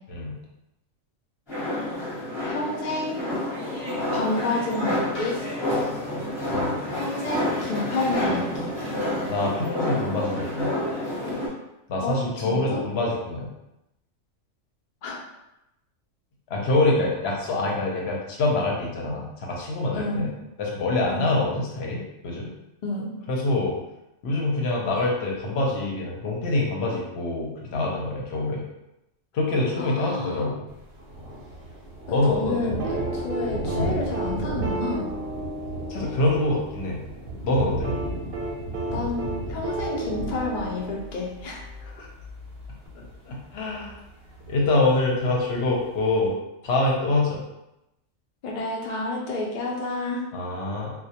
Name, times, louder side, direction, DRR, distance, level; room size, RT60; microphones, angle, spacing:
sound 1, 1.5-11.5, left 1 dB, 25° left, 0.7 m, -29 dB
voice 1, 2.5-3.2 4.1-5.4 7.0-8.7 12.0-12.8 15.0-15.2 19.9-20.3 21.1-21.4 22.8-23.1 29.8-30.5 32.2-35.1 38.9-41.7 48.4-50.2, left 2 dB, 90° left, -2 dB, 0.4 m, -30 dB
voice 2, 9.3-10.7 11.9-13.5 16.5-20.3 20.6-22.5 23.3-23.8 24.2-28.6 29.3-30.6 32.1-32.7 35.9-37.0 37.4-38.0 42.0-42.1 42.9-43.9 44.5-46.3 46.6-47.4 50.3-50.9, left 2 dB, 60° left, -2 dB, 0.7 m, -25 dB
Thunder, 30.7-46.3, right 1 dB, 60° right, 0.7 m, -35 dB
sound 2, 32.8-36.9 37.8-41.4 42.9-43.0, right 2 dB, 90° right, 1.0 m, -33 dB
2.2 x 2.1 x 2.7 m, 0.90 s
omnidirectional pair, 1.4 m